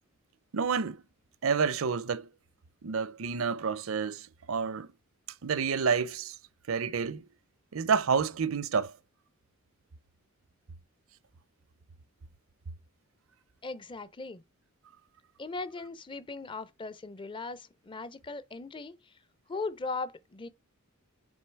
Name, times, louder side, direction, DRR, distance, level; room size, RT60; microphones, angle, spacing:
voice 1, 0.5-1.0 1.4-2.3 2.8-4.9 5.4-6.4 6.7-7.2 7.7-8.9, right 6 dB, 65° right, 0.5 m, -29 dB
voice 2, 13.6-14.4 15.4-19.1 19.5-20.5, left 3 dB, 25° left, 0.5 m, -38 dB
6.3 x 3.7 x 4.5 m
head